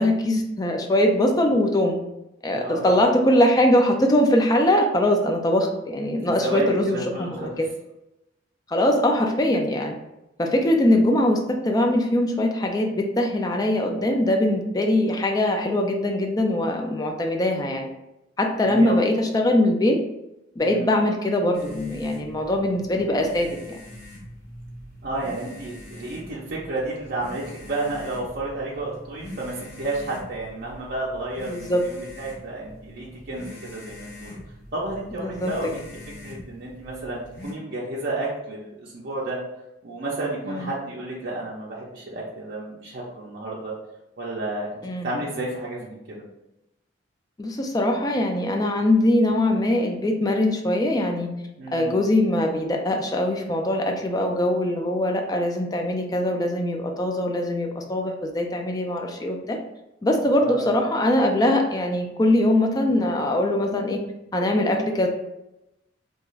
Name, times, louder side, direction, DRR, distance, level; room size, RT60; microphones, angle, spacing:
voice 1, 0.0-2.0 2.4-7.7 8.7-9.9 10.4-17.9 18.4-20.0 20.6-23.8 31.4-31.8 35.2-35.5 40.5-40.7 44.8-45.1 47.4-51.3 51.7-59.6 60.0-64.0 64.3-65.1, left 1 dB, 20° left, 2 dB, 0.3 m, -22 dB
voice 2, 2.5-2.9 6.4-7.5 18.6-19.0 20.6-20.9 25.0-34.4 34.7-35.9 36.2-39.4 39.8-43.7 44.2-44.7 45.0-46.2 51.6-52.0 60.4-60.7, right 2 dB, 50° right, -5 dB, 0.5 m, -31 dB
sound 1, 21.5-37.5, left 1 dB, 55° left, 0.8 m, -43 dB
2.5 x 2.3 x 3.0 m, 0.91 s
head